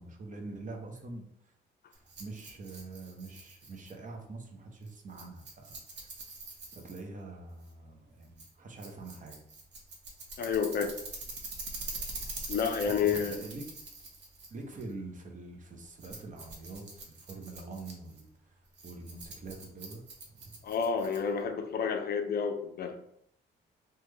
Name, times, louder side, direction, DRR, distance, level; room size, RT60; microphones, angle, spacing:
voice 1, 0.0-1.5 1.9-6.1 6.7-9.4 12.8-13.6 14.5-20.0 20.3-20.6, right 3 dB, 40° right, 2 dB, 0.7 m, -45 dB
Rattle, 1.9-21.5, right 3 dB, 60° right, 0.9 m, -45 dB
voice 2, 10.4-11.0 12.5-13.3 20.6-23.0, left 6 dB, 50° left, 6 dB, 0.4 m, -30 dB
3.1 x 2.2 x 3.2 m, 0.72 s
cardioid pair, 90°, 20 cm